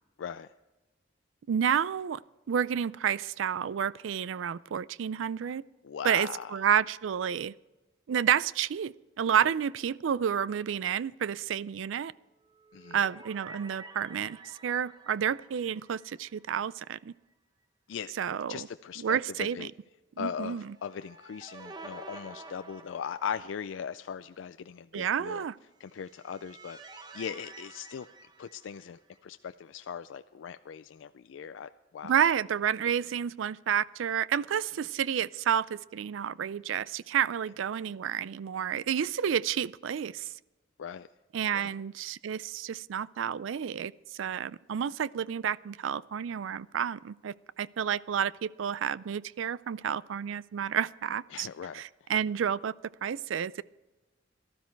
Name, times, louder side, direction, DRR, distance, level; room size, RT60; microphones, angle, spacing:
voice 1, 0.2-0.5 5.8-6.5 9.4-9.5 12.7-13.0 17.9-18.1 18.5-19.7 20.2-25.4 25.8-28.1 28.4-32.2 40.8-41.1 41.5-41.7 51.3-52.1, left 7 dB, 80° left, 11 dB, 0.4 m, -39 dB
voice 2, 1.5-2.2 2.5-5.6 6.0-7.5 8.1-12.1 12.9-17.1 18.2-18.7 19.0-19.7 20.2-20.7 24.9-25.5 32.0-40.3 41.3-51.5 51.7-52.7 53.0-53.6, right 8 dB, 90° right, 20 dB, 0.4 m, -30 dB
sound 1, 12.4-16.7 17.0-17.1 20.6-23.7 25.8-29.2, right 3 dB, 20° right, 1.0 m, -50 dB
18.0 x 12.5 x 4.5 m, 1.1 s
head